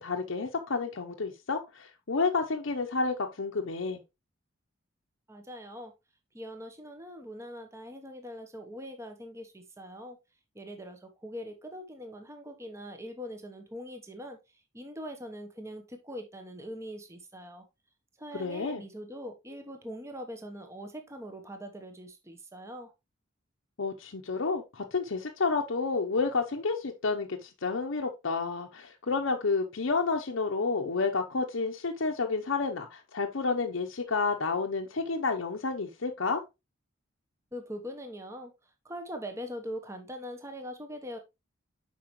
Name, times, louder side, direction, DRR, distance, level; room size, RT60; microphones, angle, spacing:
voice 1, 0.0-4.0 18.3-18.8 23.8-36.4, left 4 dB, 70° left, 0.8 m, -30 dB
voice 2, 5.3-5.9 6.3-10.2 10.5-17.7 18.2-22.9 37.5-41.2, equal, 15° right, 0.9 m, -42 dB
7.6 x 5.3 x 3.1 m
head